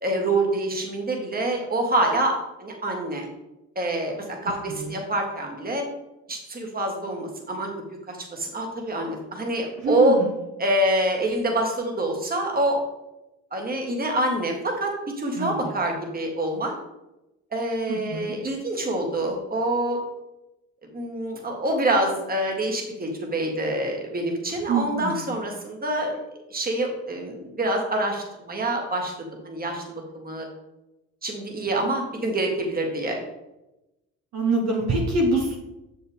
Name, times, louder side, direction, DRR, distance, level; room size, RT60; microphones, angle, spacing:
voice 1, 0.0-2.3 2.6-3.3 3.8-4.1 4.4-5.9 6.3-7.7 8.1-10.2 10.6-12.8 13.5-16.7 17.5-20.0 20.9-26.2 26.5-29.1 29.4-30.5 31.2-33.2, right 1 dB, 30° right, 1 dB, 1.8 m, -26 dB
voice 2, 9.8-10.2 15.4-15.6 17.9-18.3 24.7-25.2 34.3-35.6, right 2 dB, 55° right, -1 dB, 1.4 m, -25 dB
6.7 x 5.4 x 3.5 m, 0.94 s
supercardioid pair, 75°, 32 cm